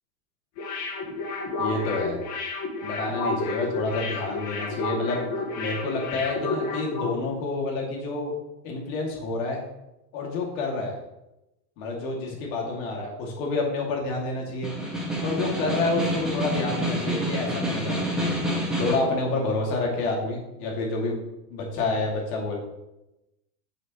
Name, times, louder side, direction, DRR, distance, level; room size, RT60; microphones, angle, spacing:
sound 1, 0.6-7.2 7.5-7.6, left 3 dB, 35° left, 1.7 m, -31 dB
voice 1, 1.6-2.2 2.8-5.2 5.6-8.3 8.6-9.6 10.1-10.9 11.8-14.7 15.2-18.3 18.8-21.2 21.5-22.6, left 3 dB, 55° left, 0 dB, 2.5 m, -28 dB
Snare drum, 14.5-19.1, equal, ahead, 1.8 m, -28 dB
7.6 x 6.2 x 3.1 m, 0.94 s
hypercardioid pair, 110°, 48 cm